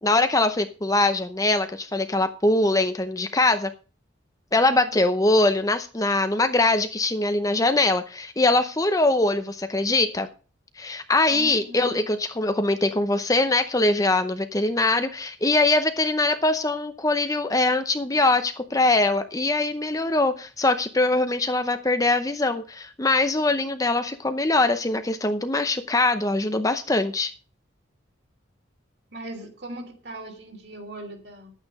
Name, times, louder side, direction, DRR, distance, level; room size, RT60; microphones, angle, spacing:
voice 1, 0.0-3.7 4.5-10.3 10.8-27.3, left 2 dB, 15° left, 9 dB, 0.7 m, -22 dB
voice 2, 11.3-12.0 29.1-31.5, right 1 dB, 55° right, 4 dB, 3.0 m, -39 dB
11.0 x 9.0 x 5.4 m, 0.36 s
head